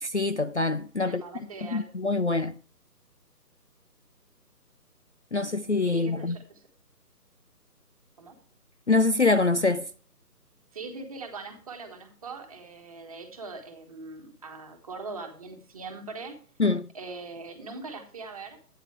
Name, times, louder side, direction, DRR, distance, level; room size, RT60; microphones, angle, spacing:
voice 1, 0.0-1.2 1.7-2.5 5.3-6.4 8.9-9.9 16.6-16.9, left 3 dB, 50° left, 0.4 m, -24 dB
voice 2, 1.0-1.9 5.9-6.6 8.2-8.4 10.7-16.4 16.9-18.6, right 3 dB, 20° right, 1.4 m, -41 dB
12.5 x 9.2 x 3.2 m
figure-of-eight pair, 150°, 47 cm